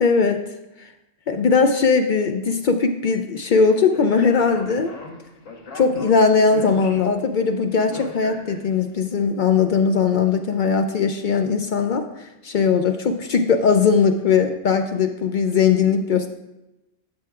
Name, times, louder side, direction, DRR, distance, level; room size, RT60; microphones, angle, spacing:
voice 1, 0.0-0.4 0.8-0.9 1.3-4.9 5.7-16.3, left 5 dB, 65° left, 6 dB, 0.5 m, -19 dB
Speech, 3.9-9.0, left 3 dB, 90° left, 1.5 m, -39 dB
12.0 x 7.8 x 2.4 m, 0.95 s
omnidirectional pair, 1.3 m